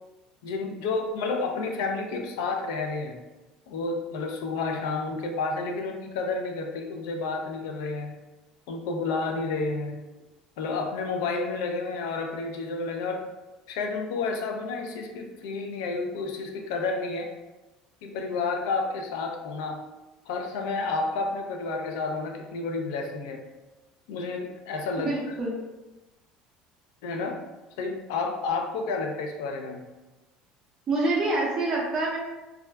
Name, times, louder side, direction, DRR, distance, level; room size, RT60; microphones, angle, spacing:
voice 1, 0.4-3.2 3.7-8.1 8.7-10.0 10.6-13.3 13.7-17.3 18.0-19.8 20.3-23.4 24.1-25.3 27.0-27.4 27.8-29.8, left 3 dB, 90° left, 3 dB, 0.4 m, -30 dB
voice 2, 25.0-25.6 30.9-32.2, right 2 dB, 30° right, -5 dB, 0.5 m, -26 dB
2.3 x 2.1 x 3.3 m, 1.1 s
cardioid pair, 140°, 2 cm